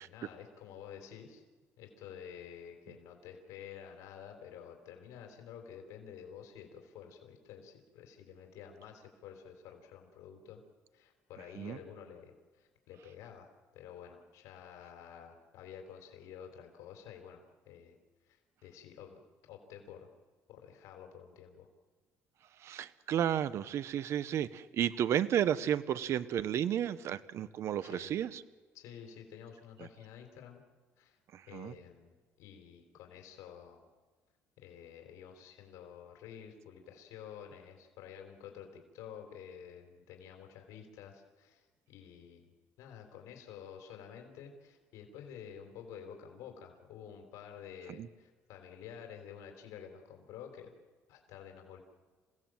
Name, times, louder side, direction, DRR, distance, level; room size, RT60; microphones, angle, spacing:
voice 1, 0.0-1.4 1.8-10.6 10.9-18.0 18.3-19.2 19.5-20.1 20.5-21.7 27.8-28.2 28.7-30.6 31.0-31.2 31.5-33.8 34.6-42.5 42.8-50.7 51.1-51.8, left 8 dB, 85° left, 3 dB, 3.6 m, -50 dB
voice 2, 22.6-28.4 29.8-29.9 31.3-31.7 48.0-48.1, right 10 dB, 55° right, 15 dB, 0.8 m, -32 dB
28.0 x 17.0 x 7.6 m, 1.4 s
cardioid pair, 125°, 5 cm